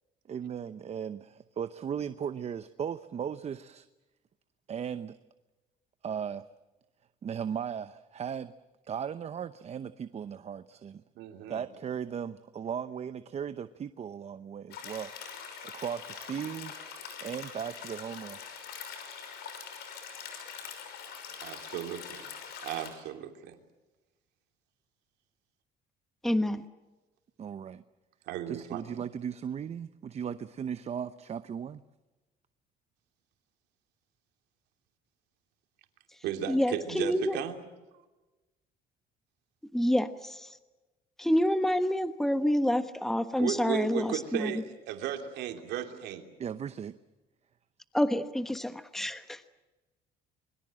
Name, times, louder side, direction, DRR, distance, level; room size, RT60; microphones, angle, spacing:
voice 1, 0.3-3.9 4.7-5.2 6.0-6.4 7.2-8.5 8.9-11.0 11.5-15.1 15.7-16.7 17.2-18.4 27.4-27.8 28.5-31.8 46.4-46.9, right 8 dB, 40° right, 12 dB, 0.8 m, -37 dB
voice 2, 11.1-11.6 21.4-22.3 22.6-23.6 28.3-28.8 36.2-37.6 37.9-38.0 43.4-46.2, right 10 dB, 85° right, 5 dB, 3.0 m, -35 dB
sound 1, 14.7-22.9, left 7 dB, 80° left, 6.0 m, -43 dB
voice 3, 26.2-26.6 36.5-37.4 39.7-40.5 41.2-44.5 47.9-49.4, equal, ahead, 10 dB, 1.2 m, -28 dB
26.0 x 22.5 x 7.7 m, 1.1 s
cardioid pair, 110°, 17 cm